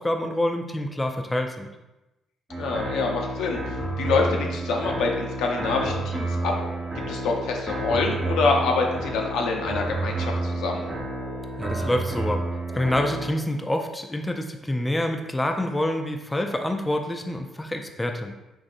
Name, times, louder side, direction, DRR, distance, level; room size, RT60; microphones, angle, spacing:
voice 1, 0.0-1.7 11.6-12.4 12.7-18.3, left 1 dB, 15° left, 4 dB, 0.3 m, -27 dB
sound 1, 2.5-13.3, right 2 dB, 30° right, 0.7 m, -30 dB
voice 2, 2.6-6.5 7.1-10.9, left 4 dB, 85° left, 1 dB, 0.5 m, -26 dB
sound 2, 5.4-13.8, right 1 dB, 90° right, 0.8 m, -43 dB
3.8 x 2.6 x 2.5 m, 1.0 s
cardioid pair, 90°, 0 cm